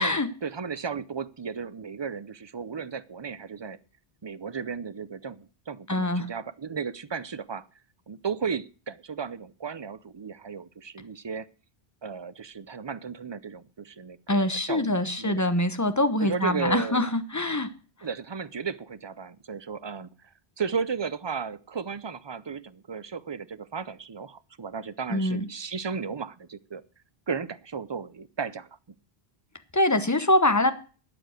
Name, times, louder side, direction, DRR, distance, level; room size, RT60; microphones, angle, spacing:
voice 1, 0.0-3.8 4.2-7.7 8.1-11.5 12.0-15.4 16.2-17.1 18.0-20.1 20.6-26.8 27.3-28.7, right 6 dB, 30° right, 0.5 m, -34 dB
voice 2, 5.9-6.2 14.3-17.7 25.1-25.5 29.7-30.7, left 1 dB, 15° left, 1.1 m, -24 dB
13.0 x 9.0 x 6.5 m
omnidirectional pair, 1.1 m